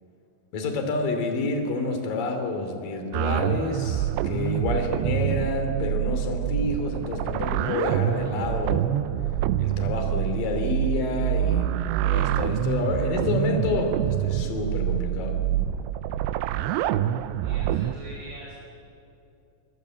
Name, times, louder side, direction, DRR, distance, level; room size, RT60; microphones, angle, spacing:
voice 1, 0.5-8.9 9.6-15.4, left 3 dB, 50° left, 5 dB, 4.0 m, -28 dB
sound 1, 3.1-18.0, right 12 dB, 80° right, 2.5 m, -26 dB
voice 2, 17.4-18.5, right 1 dB, 55° right, -5 dB, 7.6 m, -42 dB
26.0 x 22.5 x 8.5 m, 2.6 s
omnidirectional pair, 5.8 m